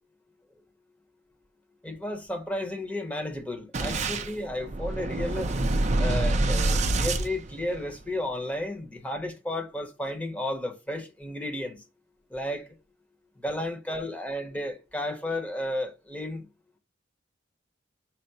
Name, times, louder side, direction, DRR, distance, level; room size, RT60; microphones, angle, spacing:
voice 1, 1.8-5.5 6.0-11.8 12.3-12.6 13.4-16.4, left 1 dB, 10° left, 0.8 m, -33 dB
Boom, 3.7-8.1, right 2 dB, 40° right, 0.5 m, -27 dB
4.6 x 2.0 x 4.0 m
head